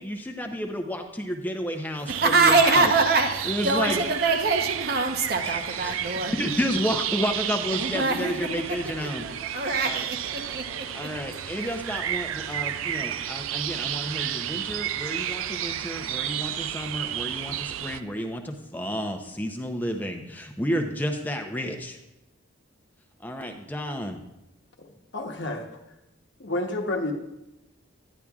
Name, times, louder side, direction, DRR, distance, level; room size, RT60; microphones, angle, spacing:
voice 1, 0.0-2.9 3.4-4.0 5.4-10.1 10.9-22.0 23.2-24.2, equal, 10° left, 4 dB, 0.6 m, -31 dB
voice 2, 2.1-6.3 7.7-8.3 9.0-11.1, right 3 dB, 50° right, 5 dB, 0.8 m, -24 dB
sound 1, 2.1-18.0, right 11 dB, 85° right, 0.4 m, -32 dB
voice 3, 24.8-25.7 26.4-27.1, left 2 dB, 60° left, 3 dB, 0.9 m, -30 dB
10.5 x 9.9 x 2.4 m, 0.93 s
head